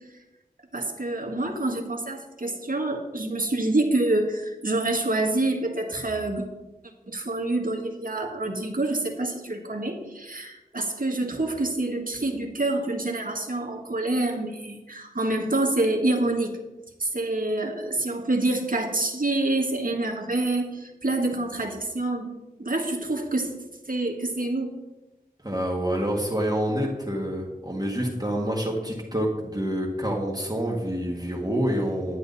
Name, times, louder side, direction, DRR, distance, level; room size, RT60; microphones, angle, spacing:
voice 1, 0.7-6.5 7.1-16.6 17.0-22.3 22.6-23.5 23.8-24.7, right 2 dB, 60° right, 2 dB, 1.7 m, -27 dB
voice 2, 25.4-32.2, equal, 25° right, -3 dB, 1.9 m, -27 dB
10.5 x 10.5 x 4.2 m, 1.1 s
wide cardioid pair, 50°, 16 cm